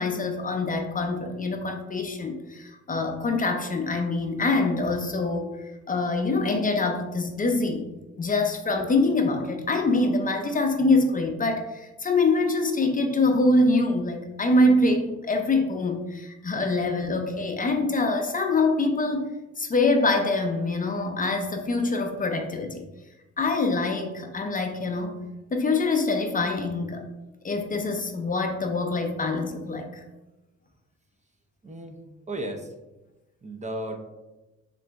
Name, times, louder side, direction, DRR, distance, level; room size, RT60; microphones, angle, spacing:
voice 1, 0.0-7.8 8.2-19.3 19.6-22.9 23.4-27.0 27.4-30.0, left 2 dB, 30° left, 4 dB, 0.6 m, -25 dB
voice 2, 31.6-32.0 32.3-32.7 33.4-34.0, right 1 dB, 25° right, 3 dB, 0.5 m, -34 dB
3.8 x 3.1 x 3.4 m, 1.0 s
cardioid pair, 90°, 30 cm